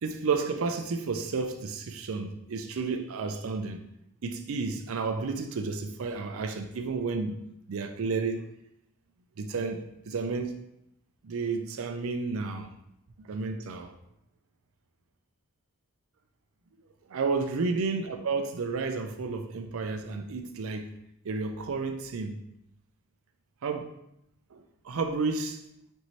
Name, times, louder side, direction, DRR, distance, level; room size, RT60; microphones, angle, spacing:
voice 1, 0.0-3.8 4.2-7.3 7.7-8.5 9.4-10.5 11.2-12.7 13.3-13.9 17.1-20.9 21.2-22.4 23.6-23.9 24.5-25.6, right 4 dB, 70° right, 6 dB, 0.5 m, -31 dB
5.4 x 2.6 x 3.1 m, 0.80 s
head